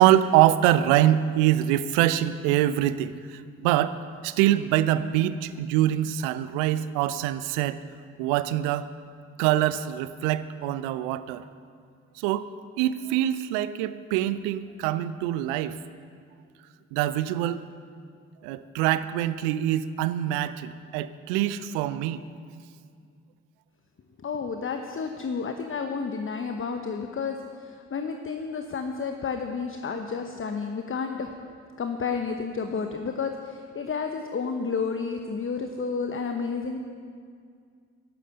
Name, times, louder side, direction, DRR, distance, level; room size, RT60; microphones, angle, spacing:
voice 1, 0.0-3.1 3.6-4.0 4.2-7.8 8.2-8.9 9.4-11.4 12.2-12.5 12.8-15.8 16.9-17.6 18.4-22.2, right 12 dB, 75° right, 14 dB, 0.6 m, -24 dB
voice 2, 24.2-31.3 31.8-36.8, left 5 dB, 35° left, 6 dB, 1.0 m, -31 dB
12.0 x 11.5 x 6.7 m, 2.2 s
figure-of-eight pair, 40°, 37 cm